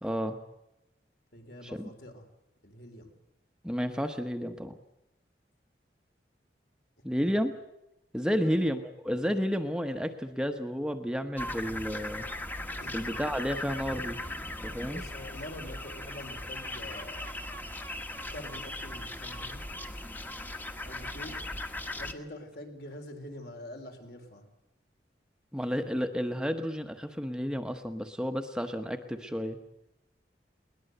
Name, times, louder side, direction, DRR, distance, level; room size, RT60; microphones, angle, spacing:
voice 1, 0.0-0.4 1.7-1.9 3.6-4.8 7.0-7.5 8.1-12.3 12.9-14.2 14.6-15.0 25.5-29.6, equal, 5° right, 6 dB, 1.1 m, -31 dB
voice 2, 1.3-2.3 2.6-3.1 7.1-7.4 8.2-8.6 12.8-13.0 14.9-17.5 18.3-19.6 20.8-21.4 22.0-24.5, left 1 dB, 65° left, 5 dB, 4.0 m, -45 dB
sound 1, 11.4-22.1, left 1 dB, 10° left, 1.3 m, -38 dB
21.5 x 20.0 x 7.9 m, 0.90 s
head